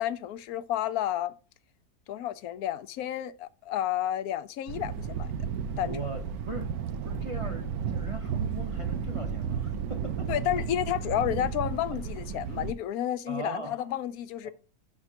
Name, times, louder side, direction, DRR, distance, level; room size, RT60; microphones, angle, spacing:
voice 1, 0.0-1.3 2.1-5.3 5.8-6.0 10.3-14.5, left 12 dB, 80° left, 1.0 m, -31 dB
Thunder, 4.7-12.7, right 7 dB, 80° right, 1.1 m, -33 dB
voice 2, 5.9-6.8 7.0-10.3 11.4-11.8 13.3-13.8 14.4-14.5, right 3 dB, 55° right, 0.3 m, -40 dB
6.0 x 4.4 x 5.5 m
omnidirectional pair, 1.6 m